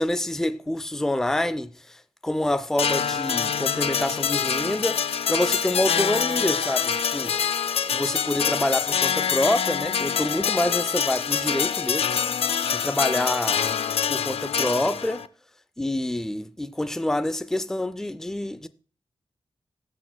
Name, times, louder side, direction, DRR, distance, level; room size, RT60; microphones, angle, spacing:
voice 1, 0.0-2.0 2.2-5.0 5.3-7.3 7.9-12.1 12.7-13.6 14.1-15.2 15.8-18.7, left 1 dB, 5° left, 0.4 m, -27 dB
sound 1, 2.8-15.3, left 7 dB, 85° left, 0.4 m, -25 dB
18.5 x 6.3 x 2.2 m
wide cardioid pair, 135°, 10 cm